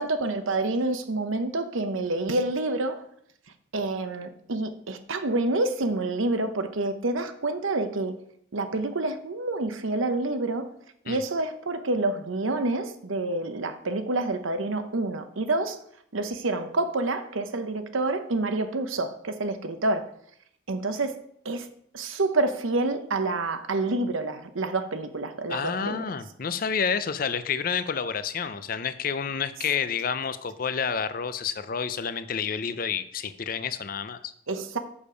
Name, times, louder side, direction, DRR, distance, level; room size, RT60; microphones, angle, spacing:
voice 1, 0.0-3.0 3.7-8.1 8.5-10.7 11.0-15.8 16.1-20.1 20.7-21.7 21.9-26.0 34.5-34.8, right 2 dB, 80° right, 0.9 m, -28 dB
voice 2, 25.5-34.3, left 6 dB, 45° left, 0.5 m, -29 dB
7.1 x 6.7 x 5.1 m
head